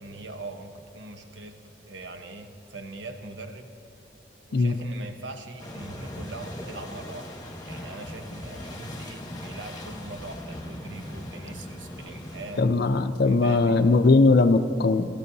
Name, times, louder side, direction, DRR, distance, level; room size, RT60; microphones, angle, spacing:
voice 1, 0.0-3.7 4.5-12.7 13.3-13.8, right 2 dB, 80° right, 6 dB, 0.9 m, -41 dB
sound 1, 5.6-12.6, left 1 dB, 20° left, 1.2 m, -39 dB
voice 2, 12.6-15.1, left 3 dB, 55° left, 10 dB, 0.5 m, -20 dB
15.5 x 13.5 x 2.7 m, 3.0 s
head